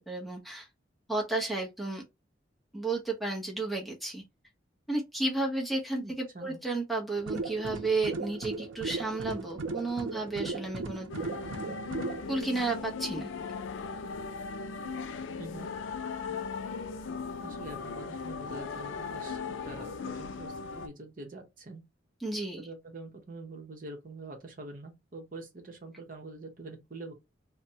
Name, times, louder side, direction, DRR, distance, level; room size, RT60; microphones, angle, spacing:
voice 1, 0.1-0.7 1.1-2.0 2.7-4.2 4.9-11.1 12.3-13.3 22.2-22.6, right 2 dB, ahead, 0.8 m, -32 dB
voice 2, 6.0-6.6 15.4-15.7 17.4-21.8 22.6-27.1, right 2 dB, 45° right, 0.9 m, -45 dB
sound 1, 7.2-12.2, right 3 dB, 90° right, 0.5 m, -37 dB
sound 2, 11.1-20.9, left 5 dB, 85° left, 0.4 m, -38 dB
3.3 x 2.1 x 2.7 m
head